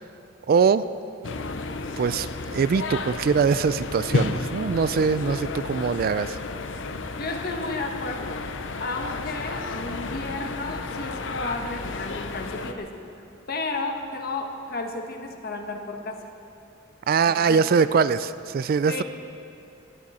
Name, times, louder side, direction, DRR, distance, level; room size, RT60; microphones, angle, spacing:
voice 1, 0.5-0.9 2.0-6.4 17.1-19.0, right 5 dB, 45° right, 14 dB, 0.3 m, -22 dB
sound 1, 1.2-12.7, left 3 dB, 65° left, 0.7 m, -32 dB
voice 2, 7.2-8.4 8.8-12.9 13.5-16.3 17.3-17.6 18.9-19.0, left 3 dB, 50° left, 4 dB, 1.2 m, -32 dB
21.0 x 10.0 x 4.2 m, 2.6 s
head